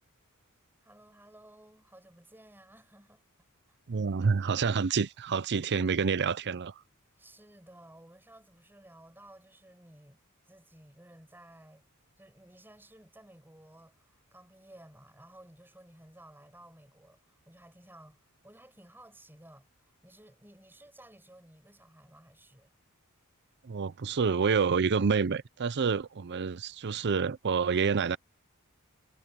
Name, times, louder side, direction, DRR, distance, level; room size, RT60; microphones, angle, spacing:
voice 1, 0.8-3.2 3.7-3.8 7.2-11.8 12.2-22.7, right 1 dB, 10° right, 6.0 m, -55 dB
voice 2, 3.9-6.7 23.6-28.2, right 5 dB, 50° right, 0.6 m, -28 dB
head